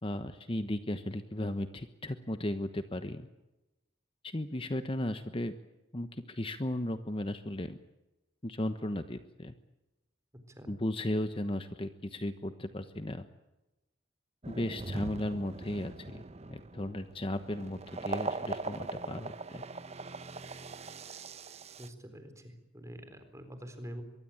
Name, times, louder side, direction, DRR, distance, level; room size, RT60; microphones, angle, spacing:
voice 1, 0.0-3.3 4.2-5.5 5.9-7.8 8.4-9.5 10.7-13.3 14.5-16.2 16.5-19.6, left 1 dB, 30° left, 10 dB, 1.1 m, -35 dB
sound 1, 14.4-21.9, right 3 dB, 35° right, 1.0 m, -41 dB
voice 2, 21.8-24.0, equal, 15° right, 8 dB, 4.0 m, -46 dB
24.0 x 23.0 x 8.9 m, 1.0 s
head